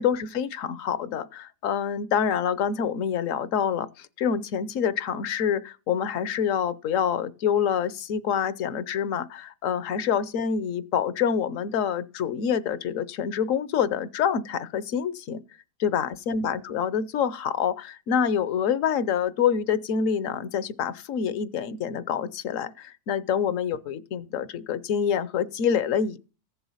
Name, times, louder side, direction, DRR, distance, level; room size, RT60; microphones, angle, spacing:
voice 1, 0.0-15.4 15.8-26.2, left 7 dB, 60° left, 1.0 m, -26 dB
15.0 x 7.1 x 5.6 m
omnidirectional pair, 1.7 m